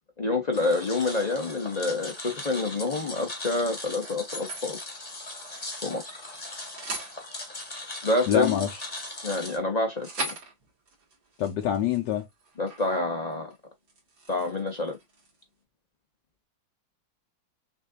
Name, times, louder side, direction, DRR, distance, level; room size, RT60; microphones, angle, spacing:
voice 1, 0.2-4.8 5.8-6.1 8.0-8.6 9.2-10.4 12.6-13.5 14.3-15.0, left 2 dB, 50° left, 0.5 m, -28 dB
sound 1, 0.5-9.6, left 2 dB, 25° left, 1.1 m, -39 dB
sound 2, 3.2-4.7 5.1-6.3 6.5-7.1 8.0-13.0 13.3-13.6 13.9-15.4, right 2 dB, 60° right, 2.3 m, -41 dB
voice 2, 8.3-8.7 11.4-12.3, left 10 dB, 75° left, 1.3 m, -25 dB
6.2 x 2.7 x 2.3 m
omnidirectional pair, 2.0 m